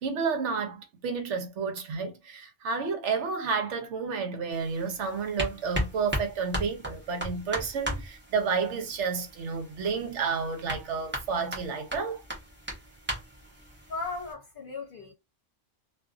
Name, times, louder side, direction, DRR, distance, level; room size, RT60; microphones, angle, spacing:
voice 1, 0.0-12.2, right 5 dB, 70° right, 1.0 m, -31 dB
sound 1, 4.5-14.3, equal, 10° right, 0.8 m, -37 dB
voice 2, 13.5-15.1, left 3 dB, 50° left, 0.8 m, -37 dB
2.5 x 2.3 x 2.4 m
omnidirectional pair, 1.3 m